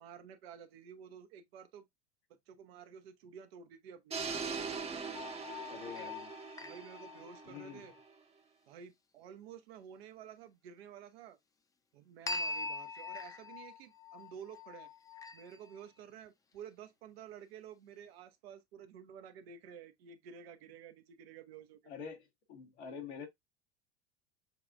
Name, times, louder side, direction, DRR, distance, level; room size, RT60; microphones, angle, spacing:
voice 1, 0.0-1.9 2.3-4.2 5.9-6.1 6.6-7.9 8.7-11.4 11.9-14.9 15.3-21.9, right 8 dB, 60° right, 0.8 m, -52 dB
sound 1, 4.1-8.1, right 5 dB, 20° right, 0.9 m, -42 dB
sound 2, 5.1-8.0 12.3-15.8, left 3 dB, 10° left, 0.4 m, -43 dB
voice 2, 5.7-6.3 7.4-7.9 21.9-22.2 22.5-23.3, left 6 dB, 70° left, 1.6 m, -46 dB
6.9 x 2.5 x 2.4 m
figure-of-eight pair, 80°, 33 cm